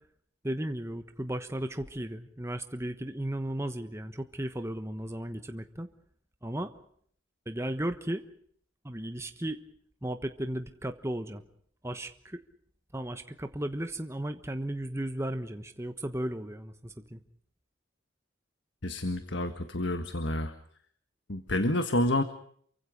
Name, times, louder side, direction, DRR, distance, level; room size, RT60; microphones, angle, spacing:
voice 1, 0.4-5.9 6.4-6.7 7.5-8.2 8.8-9.6 10.0-11.4 11.8-12.4 12.9-17.2, right 1 dB, 15° right, 7 dB, 1.2 m, -35 dB
voice 2, 18.8-20.5 21.3-22.2, left 1 dB, 65° left, 9 dB, 1.6 m, -29 dB
29.0 x 24.5 x 5.1 m, 0.62 s
head